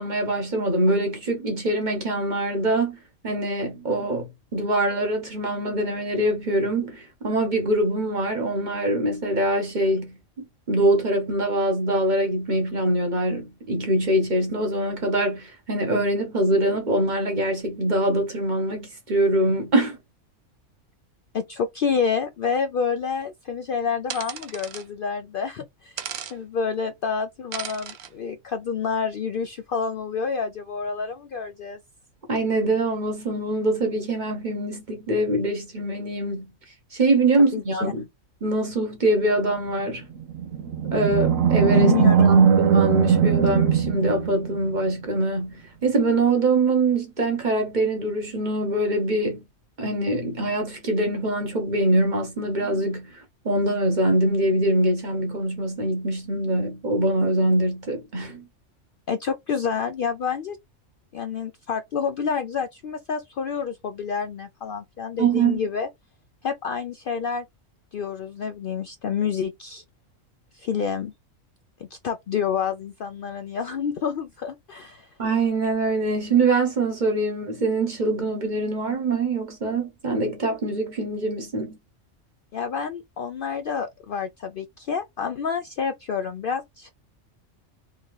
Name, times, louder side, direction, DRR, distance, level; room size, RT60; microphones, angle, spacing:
voice 1, 0.0-3.0 3.2-20.0 32.3-36.5 36.9-38.0 38.4-40.0 40.9-42.0 42.3-49.4 49.8-58.4 65.2-65.6 75.2-81.8, right 2 dB, 40° right, 1.0 m, -24 dB
voice 2, 21.3-26.0 26.3-31.8 37.4-37.9 41.7-42.4 43.1-43.3 59.1-60.6 61.1-65.9 66.4-67.4 67.9-69.8 70.5-71.1 71.8-75.1 82.5-86.9, left 6 dB, 60° left, 0.6 m, -28 dB
sound 1, 24.1-24.9 26.0-26.4 27.5-28.1, right 8 dB, 65° right, 0.9 m, -35 dB
Animal, 40.2-44.8, right 7 dB, 85° right, 1.2 m, -19 dB
3.8 x 2.7 x 3.1 m
omnidirectional pair, 1.3 m